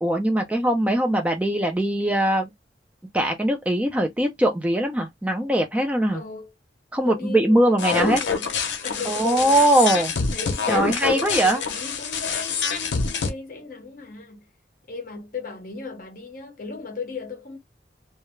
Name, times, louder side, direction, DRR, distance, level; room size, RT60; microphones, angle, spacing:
voice 1, 0.0-2.5 3.1-6.2 6.9-8.2 9.1-10.1 10.7-11.6, right 1 dB, 5° right, 0.3 m, -21 dB
voice 2, 6.1-6.5 7.0-9.9 10.3-10.7 11.1-14.5 14.9-17.6, left 4 dB, 50° left, 0.7 m, -36 dB
sound 1, 7.8-13.3, left 5 dB, 85° left, 0.6 m, -26 dB
2.3 x 2.0 x 3.0 m
head